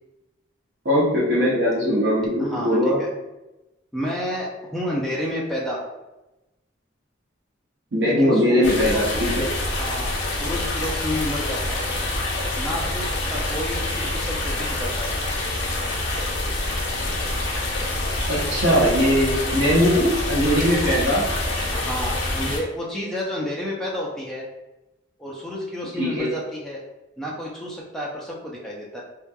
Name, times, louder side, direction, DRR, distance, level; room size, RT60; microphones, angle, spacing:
voice 1, 0.8-3.0 7.9-9.4 18.3-21.2 26.0-26.3, equal, 60° right, -8 dB, 0.7 m, -20 dB
voice 2, 2.4-3.1 3.9-5.8 8.0-9.2 9.6-11.8 12.6-15.2 21.7-24.5 25.2-26.8 27.2-29.0, equal, ahead, -5 dB, 0.3 m, -31 dB
sound 1, 8.6-22.6, left 2 dB, 65° left, 0.5 m, -26 dB
2.8 x 2.2 x 2.2 m, 1.0 s
head